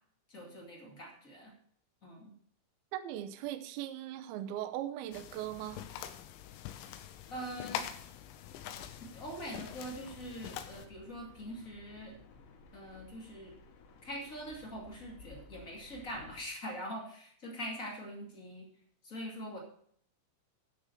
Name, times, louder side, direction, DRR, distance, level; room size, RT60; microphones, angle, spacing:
voice 1, 0.3-1.5 2.0-2.3 7.3-7.8 9.1-12.1 12.7-13.5 14.0-18.7 19.0-19.6, equal, 30° left, 1.5 m, -43 dB
voice 2, 2.9-5.9, right 12 dB, 80° right, 2.2 m, -39 dB
sound 1, 5.1-10.9, left 10 dB, 90° left, 3.1 m, -44 dB
sound 2, 8.5-16.5, left 4 dB, 75° left, 3.3 m, -56 dB
9.5 x 6.9 x 6.9 m
omnidirectional pair, 5.4 m